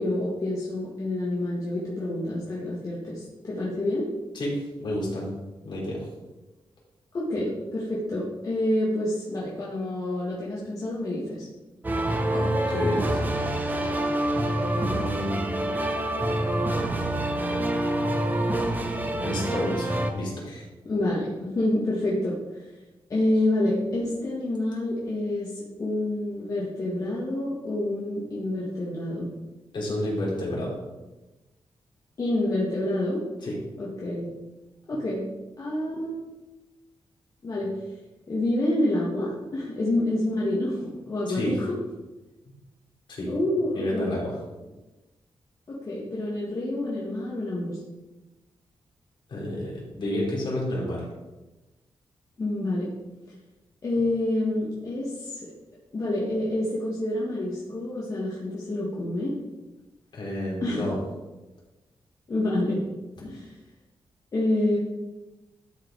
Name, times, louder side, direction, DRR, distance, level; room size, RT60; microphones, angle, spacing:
voice 1, 0.0-4.1 7.1-11.5 20.8-22.6 23.1-29.3 32.2-33.2 33.8-34.3 34.9-35.3 35.6-36.2 37.4-37.7 38.3-41.8 43.3-44.1 45.7-47.8 52.4-52.9 53.8-55.5 55.9-59.3 60.6-60.9 62.3-62.8 63.2-63.5 64.3-64.8, left 1 dB, 40° left, -6 dB, 1.8 m, -28 dB
voice 2, 4.3-5.3 5.6-6.1 12.3-13.2 14.7-15.7 19.2-20.6 29.7-30.7 33.4-33.6 41.3-41.6 43.1-43.3 43.7-44.4 49.3-51.1 60.1-61.0, left 1 dB, 55° left, -4 dB, 3.5 m, -30 dB
sound 1, 11.8-20.1, right 1 dB, 20° right, 0.8 m, -26 dB
12.0 x 4.9 x 4.7 m, 1.1 s
wide cardioid pair, 165°, 9 cm